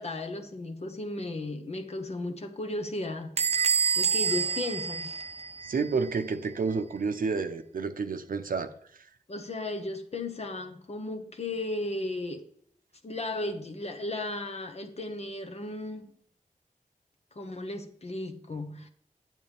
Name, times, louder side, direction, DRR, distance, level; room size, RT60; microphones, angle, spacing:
voice 1, 0.0-3.3 4.0-5.1 9.3-12.5 13.0-16.1 17.3-18.9, left 2 dB, 50° left, 1.2 m, -35 dB
Bell / Squeak, 3.4-5.9, right 6 dB, 50° right, 0.4 m, -27 dB
voice 2, 5.6-8.7, right 4 dB, 80° right, 0.8 m, -30 dB
9.4 x 8.3 x 3.5 m
wide cardioid pair, 90°, 14 cm